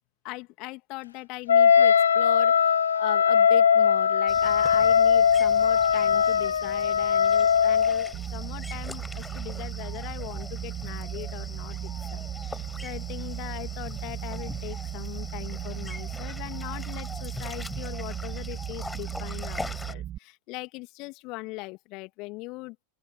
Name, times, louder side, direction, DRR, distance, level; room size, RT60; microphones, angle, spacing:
voice 1, 0.2-22.8, left 24 dB, 40° left, 3.0 m, -40 dB
Wind instrument woodwind instrument, 1.5-8.1, left 7 dB, 70° left, 0.5 m, -20 dB
sound 1, 4.3-19.9, left 2 dB, 10° left, 7.6 m, -42 dB
sound 2, 8.1-20.2, right 12 dB, 30° right, 4.9 m, -36 dB
open air
figure-of-eight pair, 90°, 0 cm